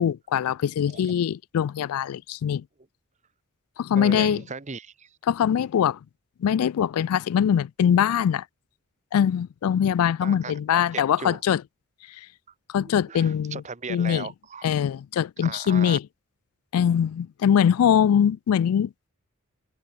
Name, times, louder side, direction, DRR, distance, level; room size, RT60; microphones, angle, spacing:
voice 1, 0.0-2.6 3.8-4.4 5.3-6.0 6.4-8.4 9.1-11.6 12.7-13.6 13.9-14.3 14.6-16.1 16.7-18.9, left 8 dB, 80° left, 0.3 m, -22 dB
voice 2, 4.0-5.1 10.2-11.4 12.8-14.7 15.4-16.0, right 4 dB, 30° right, 0.9 m, -37 dB
head